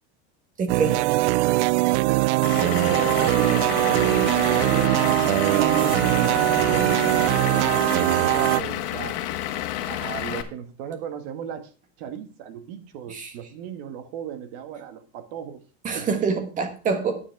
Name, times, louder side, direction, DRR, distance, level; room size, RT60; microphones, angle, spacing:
voice 1, 0.6-1.0 5.6-5.9 13.1-13.3 15.8-17.2, right 5 dB, 25° right, 7 dB, 1.5 m, -26 dB
sound 1, 0.7-8.6, right 20 dB, 80° right, 0.5 m, -21 dB
Vehicle / Engine, 2.4-10.4, left 13 dB, 70° left, 1.6 m, -30 dB
voice 2, 2.5-5.0 5.5-9.2 9.9-11.7 12.0-15.6 15.9-16.1, right 9 dB, 60° right, 9 dB, 1.7 m, -36 dB
9.9 x 8.7 x 4.7 m, 0.37 s
cardioid pair, 170°, 34 cm